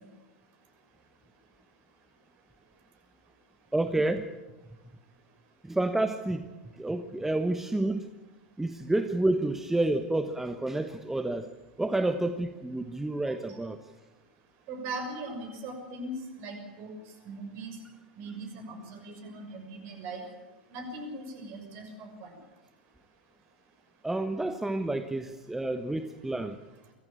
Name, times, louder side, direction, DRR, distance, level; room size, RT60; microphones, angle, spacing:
voice 1, 3.7-4.3 5.6-6.5 6.7-8.1 8.6-11.5 11.8-13.8 24.0-26.6, right 2 dB, 5° right, 8 dB, 1.2 m, -29 dB
voice 2, 14.7-17.0 17.2-17.8 18.2-20.2 20.7-22.3, right 2 dB, 45° right, 5 dB, 6.5 m, -40 dB
24.5 x 14.5 x 8.7 m, 1.1 s
figure-of-eight pair, 90°, 5 cm